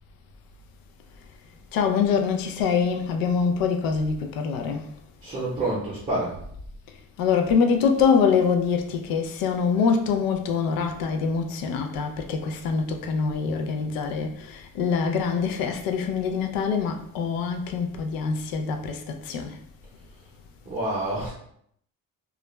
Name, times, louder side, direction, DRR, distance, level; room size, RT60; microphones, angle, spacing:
voice 1, 1.7-4.9 7.2-19.5, left 5 dB, 85° left, 0.5 m, -24 dB
voice 2, 5.2-6.4 20.6-21.3, right 2 dB, 25° right, 0.7 m, -28 dB
2.4 x 2.1 x 3.0 m
cardioid pair, 135°, 34 cm